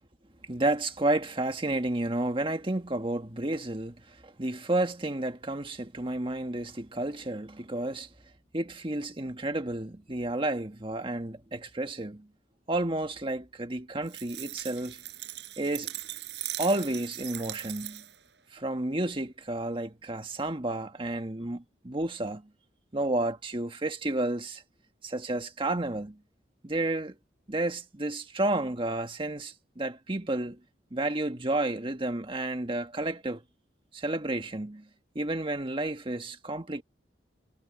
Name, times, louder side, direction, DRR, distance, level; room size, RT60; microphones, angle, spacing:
voice 1, 0.5-8.1 8.5-12.3 12.7-15.0 15.6-15.9 16.6-18.0 18.5-22.4 22.9-24.6 25.0-26.2 26.6-27.1 27.5-30.6 30.9-33.4 33.9-34.8 35.1-36.8, right 2 dB, 30° right, 1.6 m, -31 dB
sound 1, 14.1-18.3, right 14 dB, 70° right, 7.1 m, -39 dB
head